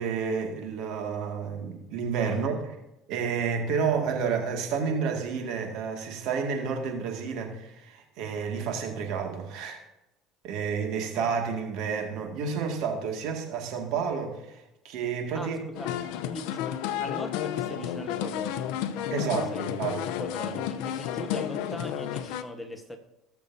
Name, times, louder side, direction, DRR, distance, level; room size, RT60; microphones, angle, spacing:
voice 1, 0.0-2.8 3.1-9.8 10.4-15.6 19.1-20.1, right 6 dB, 65° right, 3 dB, 2.2 m, -30 dB
voice 2, 2.3-2.6 15.3-15.9 16.3-19.8 20.2-23.0, equal, 5° left, 5 dB, 1.3 m, -41 dB
sound 1, 15.7-22.4, left 10 dB, 75° left, 0.7 m, -32 dB
20.0 x 7.1 x 2.8 m, 0.93 s
supercardioid pair, 115°, 0 cm